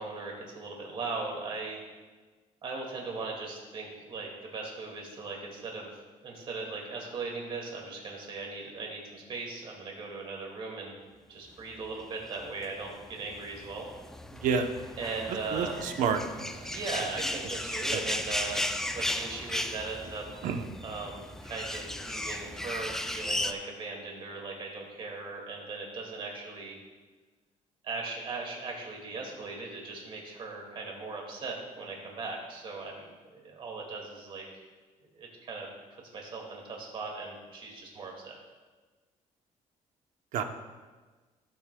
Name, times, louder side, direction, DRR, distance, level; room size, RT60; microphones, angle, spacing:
voice 1, 0.0-1.8 2.6-5.9 6.2-10.9 11.3-13.9 15.0-15.8 16.6-20.3 20.8-26.8 27.8-33.0 33.3-34.4 35.1-38.3, right 3 dB, 40° right, 0 dB, 2.1 m, -39 dB
sound 1, 12.4-23.5, left 1 dB, 5° left, 0.3 m, -35 dB
voice 2, 14.3-14.7 15.5-16.7 17.9-18.0 20.4-20.6 40.3-40.4, right 6 dB, 75° right, 6 dB, 0.8 m, -29 dB
15.5 x 8.0 x 2.3 m, 1.3 s
cardioid pair, 165°, 13 cm